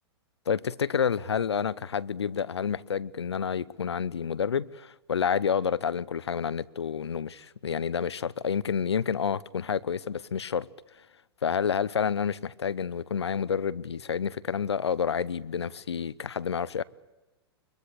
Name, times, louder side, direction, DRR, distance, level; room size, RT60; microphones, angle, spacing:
voice 1, 0.5-10.7 11.4-16.8, left 7 dB, 90° left, 0.8 m, -29 dB
23.0 x 22.0 x 8.4 m
hypercardioid pair, 115°, 14 cm